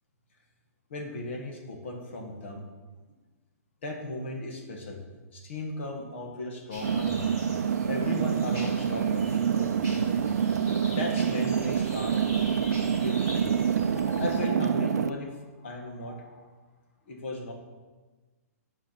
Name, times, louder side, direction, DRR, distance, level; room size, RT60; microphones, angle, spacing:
voice 1, 0.9-2.6 3.8-5.0 5.3-7.3 7.9-10.3 10.9-12.2 13.0-16.4 17.1-17.5, left 2 dB, 45° left, 2 dB, 1.6 m, -36 dB
sound 1, 6.7-14.4, equal, 25° left, 3.2 m, -43 dB
sound 2, 6.8-15.1, right 7 dB, 85° right, 0.4 m, -27 dB
9.3 x 5.0 x 5.8 m, 1.3 s
hypercardioid pair, 180°, 9 cm